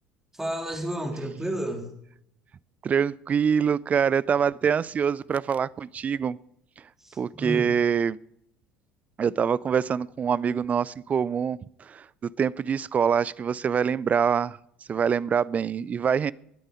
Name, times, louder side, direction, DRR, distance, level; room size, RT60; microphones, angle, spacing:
voice 1, 0.3-1.9 7.0-7.7, right 1 dB, 10° right, 2 dB, 3.5 m, -31 dB
voice 2, 2.8-6.4 7.2-8.2 9.2-14.6 14.9-16.3, right 7 dB, 30° right, 22 dB, 0.4 m, -25 dB
18.0 x 9.0 x 5.0 m, 0.75 s
figure-of-eight pair, 60°, 5 cm